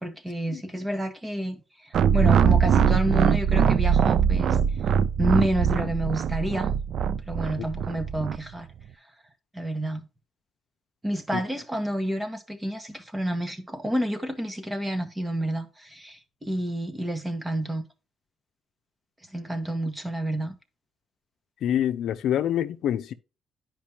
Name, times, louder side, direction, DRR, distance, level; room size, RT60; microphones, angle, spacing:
voice 1, 0.0-4.6 5.2-6.7 7.3-8.7 9.5-10.0 11.0-17.8 19.3-20.5, right 1 dB, 15° right, 1.5 m, -29 dB
sound 1, 1.9-8.4, right 7 dB, 65° right, 0.5 m, -22 dB
voice 2, 21.6-23.1, left 10 dB, 75° left, 0.6 m, -26 dB
10.0 x 5.2 x 2.9 m
cardioid pair, 90°, 0 cm